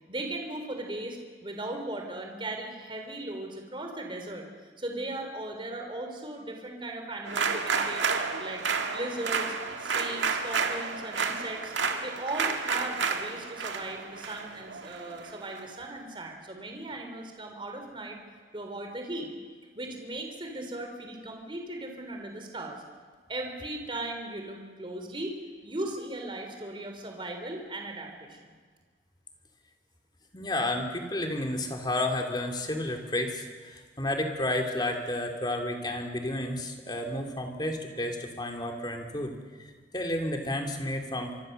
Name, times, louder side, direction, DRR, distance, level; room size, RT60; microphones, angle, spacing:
voice 1, 0.1-8.0 8.4-8.6 8.9-18.2 18.5-19.3 19.7-22.8 23.3-25.3 25.6-28.5, right 2 dB, 25° right, 3 dB, 3.5 m, -37 dB
sound 1, 7.3-15.6, right 5 dB, 85° right, 2.0 m, -31 dB
voice 2, 30.3-39.3 39.6-41.3, left 1 dB, 25° left, 3 dB, 2.9 m, -31 dB
25.5 x 24.5 x 6.7 m, 1.5 s
head